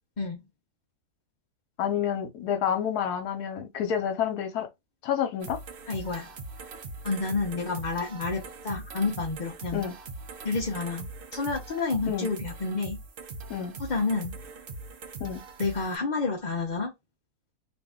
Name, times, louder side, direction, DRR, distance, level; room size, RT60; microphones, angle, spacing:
voice 1, 1.8-4.7 5.0-5.6 9.7-9.9 12.1-12.3 13.5-13.7 15.2-15.4, left 8 dB, 75° left, 1.3 m, -29 dB
sound 1, 5.4-16.0, right 3 dB, 60° right, 0.6 m, -41 dB
voice 2, 5.9-6.3 7.0-9.8 10.4-13.0 13.8-14.3 15.6-16.9, left 4 dB, 45° left, 0.6 m, -29 dB
2.8 x 2.6 x 3.5 m
omnidirectional pair, 1.7 m